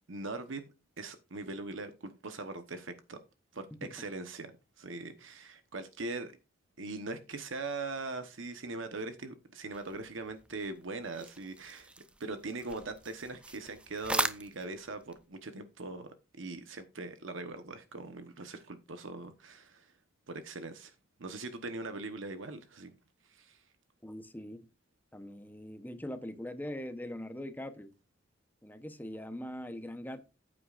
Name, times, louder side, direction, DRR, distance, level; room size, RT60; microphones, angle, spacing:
voice 1, 0.1-0.6 1.0-3.2 3.5-4.5 4.8-6.3 6.8-11.9 12.2-19.9 20.3-20.9 21.2-22.9 23.3-23.6, right 3 dB, 75° right, 1.1 m, -41 dB
breaking bones, 9.7-15.2, right 2 dB, 5° right, 0.5 m, -40 dB
voice 2, 24.0-24.7 25.1-27.9 28.6-30.2, left 1 dB, 10° left, 0.9 m, -42 dB
14.5 x 8.7 x 2.5 m
head